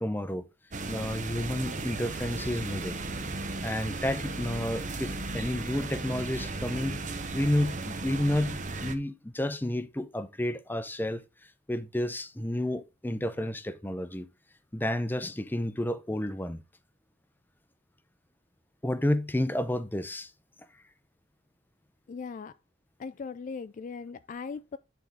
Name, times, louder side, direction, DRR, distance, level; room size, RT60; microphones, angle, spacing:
voice 1, 0.0-0.5 0.9-3.0 3.6-7.0 7.3-11.2 11.7-14.3 14.7-16.6 18.8-20.3, left 1 dB, 10° left, 0.7 m, -31 dB
sound 1, 0.7-8.9, right 3 dB, 40° right, 1.0 m, -36 dB
voice 2, 22.1-22.5 23.0-24.8, left 5 dB, 40° left, 0.3 m, -39 dB
9.5 x 4.7 x 3.9 m
head